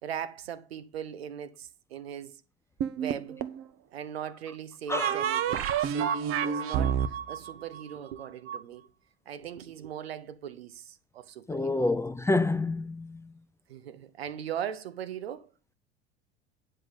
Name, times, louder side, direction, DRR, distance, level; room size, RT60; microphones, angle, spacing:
voice 1, 0.0-2.4 3.0-3.4 3.9-8.9 9.3-11.9 13.7-15.5, right 9 dB, 75° right, 1.1 m, -39 dB
sound 1, 2.8-3.6 4.9-8.6, right 8 dB, 45° right, 1.0 m, -29 dB
voice 2, 11.5-13.2, left 2 dB, 10° left, 0.5 m, -28 dB
10.0 x 5.6 x 5.2 m
figure-of-eight pair, 70°, 31 cm